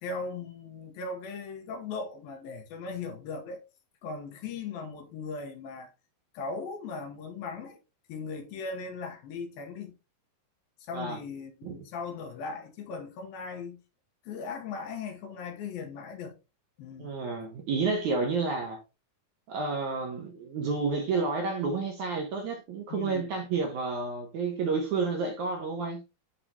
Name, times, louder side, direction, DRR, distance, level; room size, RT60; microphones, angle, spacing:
voice 1, 0.0-3.6 4.0-5.9 6.3-7.8 8.1-9.9 10.8-13.8 14.3-16.4 16.8-17.2 22.9-23.3, left 4 dB, 70° left, 2.9 m, -38 dB
voice 2, 17.0-18.8 19.5-26.0, right 4 dB, 65° right, 2.0 m, -30 dB
10.0 x 3.8 x 2.9 m
omnidirectional pair, 4.5 m